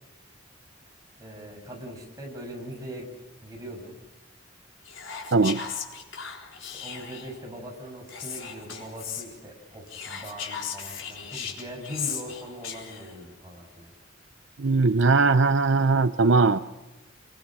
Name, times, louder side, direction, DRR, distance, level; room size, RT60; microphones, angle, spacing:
voice 1, 1.2-3.1 3.4-3.9 6.6-13.9, equal, 20° right, 1 dB, 6.8 m, -41 dB
Whispering, 4.9-7.4 8.1-9.3 9.9-13.2, left 7 dB, 90° left, 4.1 m, -37 dB
voice 2, 5.3-5.6 14.6-16.6, right 3 dB, 70° right, 12 dB, 0.7 m, -20 dB
27.5 x 23.0 x 6.2 m, 1.1 s
head